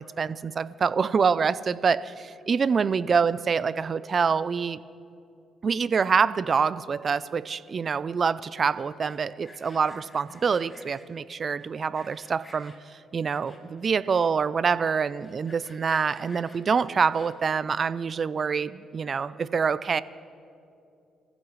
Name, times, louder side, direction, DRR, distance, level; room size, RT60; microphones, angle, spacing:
voice 1, 0.0-4.8 5.6-12.7 13.1-20.0, right 6 dB, 45° right, 17 dB, 0.5 m, -26 dB
Sawing, 8.9-11.1 11.6-12.8 13.2-13.8 14.3-14.4 14.6-14.7 15.1-17.6, left 2 dB, 20° left, 2.7 m, -52 dB
29.0 x 15.0 x 3.2 m, 2.6 s
cardioid pair, 90°, 0 cm